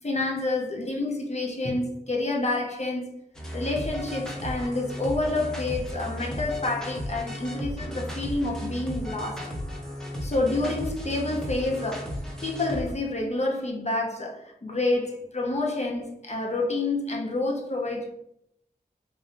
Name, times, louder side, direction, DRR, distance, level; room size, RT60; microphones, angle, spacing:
voice 1, 0.0-3.1 3.5-9.5 10.2-12.1 12.4-18.1, left 2 dB, 45° left, 0.7 m, -28 dB
sound 1, 3.3-12.9, equal, 5° left, 0.7 m, -35 dB
3.1 x 2.6 x 2.5 m
wide cardioid pair, 65°, 16 cm